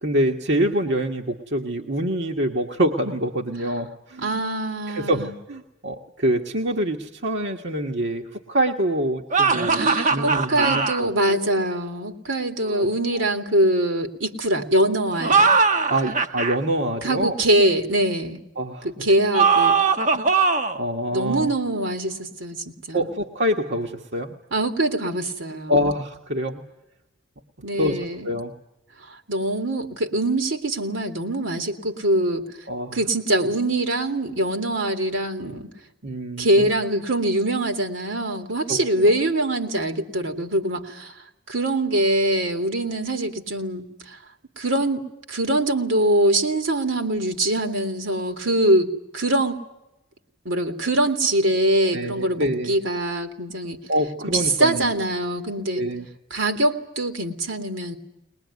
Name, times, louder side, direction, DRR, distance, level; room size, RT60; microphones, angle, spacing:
voice 1, 0.0-4.4 4.9-11.6 12.6-12.9 13.1-13.2 15.9-17.4 18.6-18.9 20.1-20.3 20.7-21.5 22.9-24.3 25.7-26.7 27.8-28.0 28.2-28.5 32.7-33.0 36.0-36.7 38.7-39.1 51.9-52.8 53.9-54.9 55.7-56.1, right 1 dB, 60° right, 2 dB, 1.5 m, -26 dB
voice 2, 4.2-5.3 9.7-15.5 17.0-18.4 18.8-19.8 21.1-23.1 24.5-25.9 27.6-28.3 29.0-32.4 32.9-35.7 36.4-41.1 41.5-44.2 44.6-45.0 45.3-49.6 50.4-53.8 54.3-55.8 56.3-58.0, right 1 dB, 80° right, 6 dB, 2.5 m, -23 dB
sound 1, 9.3-11.0 15.1-16.6 19.3-20.8, right 4 dB, 40° right, 1.0 m, -20 dB
21.0 x 21.0 x 9.5 m, 0.89 s
head